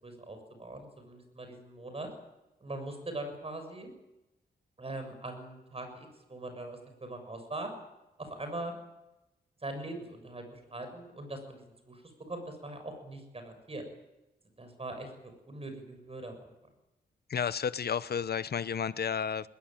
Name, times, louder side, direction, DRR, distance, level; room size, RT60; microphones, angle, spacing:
voice 1, 0.0-2.1 2.6-3.9 4.8-7.7 8.2-8.7 9.6-12.0 12.3-13.8 14.6-16.5, right 2 dB, 30° right, 7 dB, 6.9 m, -41 dB
voice 2, 17.3-19.5, left 7 dB, 60° left, 15 dB, 0.9 m, -32 dB
20.5 x 19.0 x 9.2 m, 0.97 s
cardioid pair, 90°, 18 cm